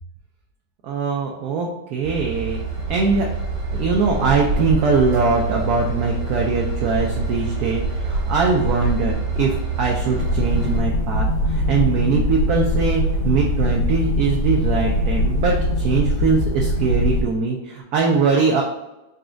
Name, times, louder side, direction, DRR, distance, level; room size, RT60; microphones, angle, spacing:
voice 1, 0.8-2.6 2.9-3.3 3.7-18.6, right 4 dB, 75° right, 0 dB, 0.9 m, -21 dB
Train / Engine, 2.0-10.8, right 3 dB, 55° right, 1.7 m, -26 dB
sound 1, 10.2-17.2, left 1 dB, 90° left, 1.8 m, -21 dB
4.1 x 2.3 x 3.8 m, 0.98 s
omnidirectional pair, 2.1 m